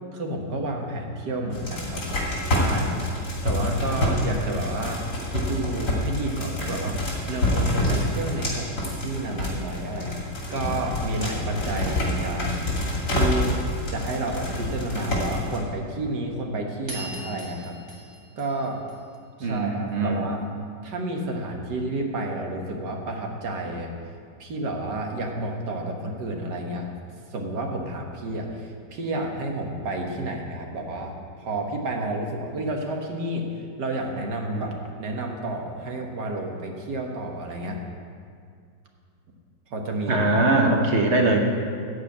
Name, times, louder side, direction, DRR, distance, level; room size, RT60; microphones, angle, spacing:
voice 1, 0.1-3.0 3.4-5.0 5.3-7.0 7.3-12.6 13.1-13.6 13.9-17.8 18.4-18.8 19.4-20.4 20.8-23.9 24.4-26.9 27.3-33.4 33.8-37.8 39.7-40.2, right 2 dB, 70° right, 2 dB, 1.9 m, -30 dB
sound 1, 1.5-15.6, left 1 dB, 65° left, 3.2 m, -27 dB
sound 2, 16.9-19.4, right 1 dB, 15° right, 2.1 m, -40 dB
voice 2, 19.4-20.2 40.1-41.4, right 2 dB, 45° right, 2 dB, 1.2 m, -21 dB
14.5 x 4.9 x 8.5 m, 2.2 s
omnidirectional pair, 1.9 m